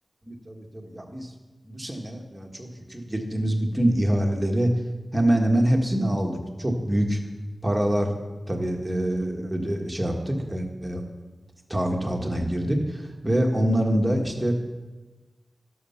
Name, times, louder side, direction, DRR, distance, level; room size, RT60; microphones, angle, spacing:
voice 1, 0.2-1.3 1.6-4.7 5.1-7.2 7.6-8.1 8.5-11.0 11.7-14.5, right 1 dB, 15° right, 2 dB, 1.6 m, -25 dB
11.5 x 6.4 x 5.8 m, 1.2 s
wide cardioid pair, 70°, 0 cm